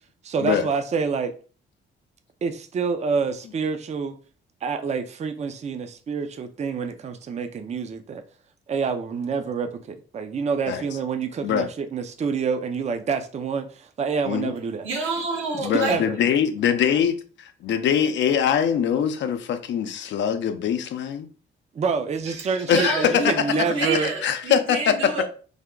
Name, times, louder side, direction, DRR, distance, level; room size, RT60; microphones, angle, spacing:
voice 1, 0.2-1.3 2.4-4.2 4.6-8.2 8.7-14.9 15.5-16.2 21.7-24.1, right 5 dB, 35° right, 0.5 m, -27 dB
voice 2, 14.8-16.0 22.3-25.2, right 3 dB, 80° right, 1.3 m, -28 dB
voice 3, 15.6-21.3 22.7-23.4 24.2-25.0, left 8 dB, 65° left, 0.5 m, -23 dB
3.4 x 2.2 x 3.6 m
cardioid pair, 90°, 20 cm